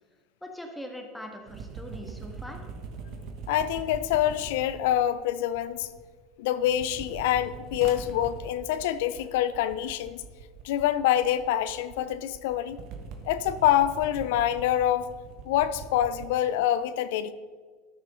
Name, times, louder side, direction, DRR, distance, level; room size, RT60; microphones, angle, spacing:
voice 1, 0.4-2.6, equal, 5° left, 3 dB, 1.5 m, -41 dB
sound 1, 1.5-6.2 6.5-16.3, right 5 dB, 55° right, 1.1 m, -43 dB
voice 2, 3.5-5.9 6.4-10.2 10.6-12.8 13.2-15.1 15.4-17.3, left 11 dB, 75° left, 14 dB, 0.5 m, -26 dB
13.0 x 6.4 x 3.8 m, 1.5 s
hypercardioid pair, 95°, 0 cm